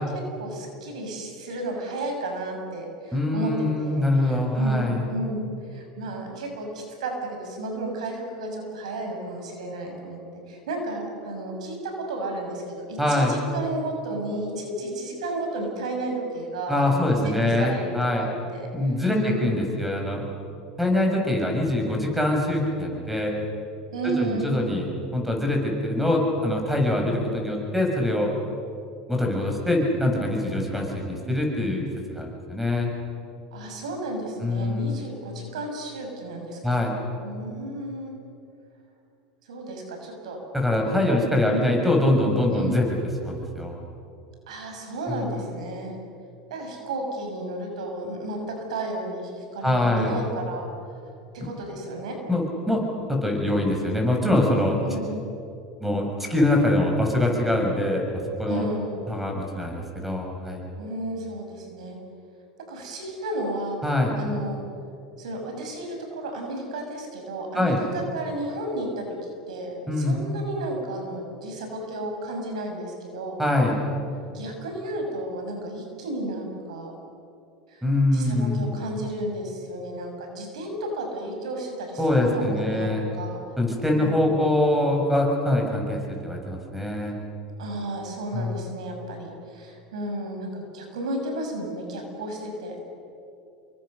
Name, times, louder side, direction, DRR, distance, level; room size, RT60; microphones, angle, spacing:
voice 1, 0.1-10.2 10.5-18.7 19.1-19.5 23.9-24.5 33.5-36.8 37.2-38.2 39.5-40.4 40.8-41.7 42.5-42.8 44.5-45.9 46.5-50.7 51.3-52.2 54.8-55.3 58.5-59.0 60.8-62.0 62.7-63.8 64.1-64.6 65.2-73.4 74.3-76.9 77.7-77.8 78.1-83.4 83.9-84.4 87.6-92.8, right 1 dB, 85° right, 2 dB, 6.2 m, -33 dB
voice 2, 3.1-5.0 13.0-13.4 16.7-18.3 18.7-20.2 20.8-23.3 24.0-28.3 29.1-31.8 32.1-32.9 34.4-34.9 36.6-36.9 40.5-42.8 43.2-43.7 45.1-45.2 49.6-50.2 51.4-51.5 52.3-52.8 53.1-54.8 55.8-58.7 59.1-60.6 63.8-64.1 67.5-67.8 69.9-70.2 73.4-73.8 77.8-78.8 82.0-83.1 83.6-87.2 88.3-88.6, left 1 dB, 5° right, 1 dB, 6.9 m, -24 dB
28.5 x 23.5 x 6.7 m, 2.6 s
hypercardioid pair, 100°, 4 cm